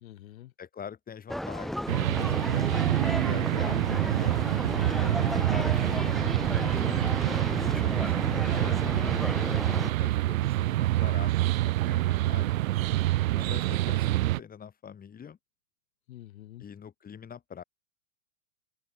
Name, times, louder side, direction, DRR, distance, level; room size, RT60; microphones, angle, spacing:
voice 1, 0.0-0.5 6.6-7.1 16.1-16.6, left 14 dB, 70° left, 2.1 m, -48 dB
voice 2, 0.6-4.4 5.0-6.4 7.2-12.6 13.3-15.4 16.6-17.6, left 7 dB, 20° left, 7.2 m, -45 dB
sound 1, 1.3-9.9, equal, ahead, 0.8 m, -33 dB
sound 2, 1.9-14.4, right 16 dB, 70° right, 1.0 m, -26 dB
hypercardioid pair, 130°, 42 cm